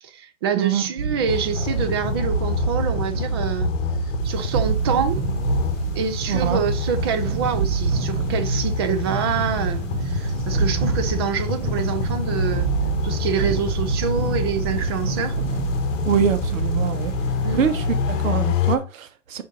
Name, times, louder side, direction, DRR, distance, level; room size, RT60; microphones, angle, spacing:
voice 1, 0.0-3.7 4.2-5.2 6.0-12.7 13.0-15.4 17.4-17.6, right 7 dB, 20° right, 0.4 m, -26 dB
sound 1, 1.0-18.6, right 5 dB, 55° right, 1.6 m, -27 dB
sound 2, 1.3-18.8, left 7 dB, 65° left, 1.1 m, -28 dB
sound 3, 4.2-18.3, right 2 dB, 40° right, 3.3 m, -35 dB
voice 2, 6.3-6.6 16.0-17.1 17.5-19.4, right 8 dB, 70° right, 1.3 m, -24 dB
5.0 x 4.0 x 5.2 m
hypercardioid pair, 150°, 41 cm